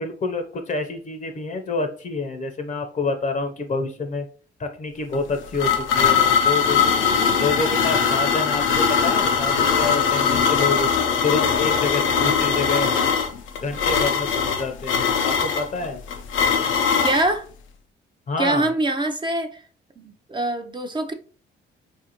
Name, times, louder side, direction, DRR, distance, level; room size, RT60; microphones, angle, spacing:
voice 1, 0.0-4.3 4.6-6.8 7.3-10.9 11.2-12.9 13.6-16.0 18.3-18.7, left 3 dB, 40° left, 0.6 m, -27 dB
sound 1, 5.1-17.3, left 6 dB, 85° left, 0.5 m, -21 dB
voice 2, 17.0-17.4 18.4-19.6 20.0-20.1 20.3-21.1, right 2 dB, 25° right, 0.5 m, -23 dB
4.2 x 2.6 x 2.8 m
cardioid pair, 90°, 20 cm